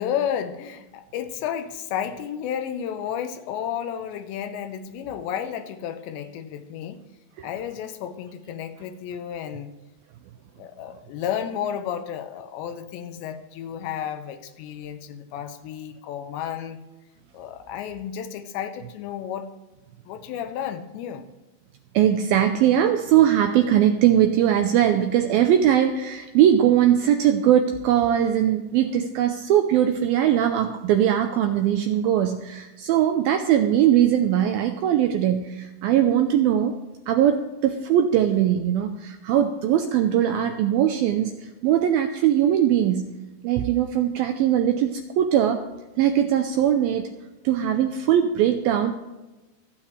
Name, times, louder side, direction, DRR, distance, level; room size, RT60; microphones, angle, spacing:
voice 1, 0.0-7.0 7.4-9.8 10.6-16.8 17.3-19.5 20.1-21.3, left 9 dB, 85° left, 8 dB, 3.2 m, -32 dB
voice 2, 21.9-36.8 37.1-41.3 41.6-43.1 43.4-45.6 46.0-47.1 47.4-48.9, right 10 dB, 85° right, 7 dB, 2.1 m, -20 dB
26.0 x 8.8 x 3.3 m, 1.1 s
omnidirectional pair, 5.0 m